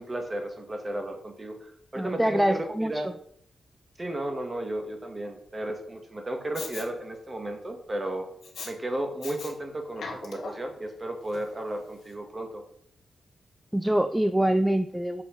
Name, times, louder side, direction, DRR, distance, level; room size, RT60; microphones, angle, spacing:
voice 1, 0.0-3.1 4.0-8.3 8.6-12.6, right 1 dB, 25° right, 5 dB, 1.7 m, -34 dB
voice 2, 2.0-2.9 13.7-15.2, right 1 dB, 5° right, 9 dB, 0.4 m, -24 dB
Respiratory sounds, 6.5-6.9 8.4-8.7 9.2-9.5 9.9-10.7 11.3-11.4, left 4 dB, 80° left, 2.1 m, -39 dB
7.0 x 6.6 x 5.3 m, 0.65 s
wide cardioid pair, 125°, 0 cm